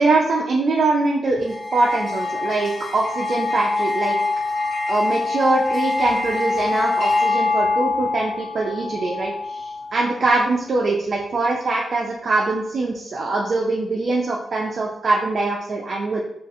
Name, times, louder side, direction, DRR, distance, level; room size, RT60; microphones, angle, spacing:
voice 1, 0.0-4.2 4.9-16.2, right 3 dB, 45° right, -1 dB, 0.4 m, -22 dB
sound 1, 1.4-10.0, left 3 dB, 65° left, 1.0 m, -24 dB
3.8 x 2.4 x 2.5 m, 0.79 s
wide cardioid pair, 150°, 0 cm